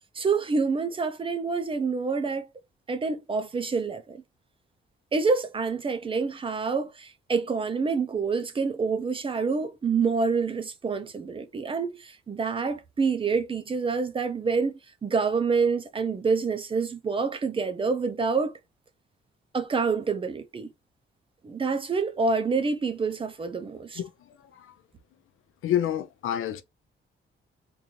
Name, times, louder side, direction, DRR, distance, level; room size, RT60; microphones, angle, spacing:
voice 1, 0.1-2.5 2.9-4.2 5.1-18.5 19.5-20.7 21.4-24.0, right 4 dB, 25° right, 0.5 m, -27 dB
voice 2, 24.0-24.7 25.6-26.6, left 10 dB, 85° left, 0.6 m, -29 dB
3.8 x 2.5 x 3.0 m
wide cardioid pair, 165°, 21 cm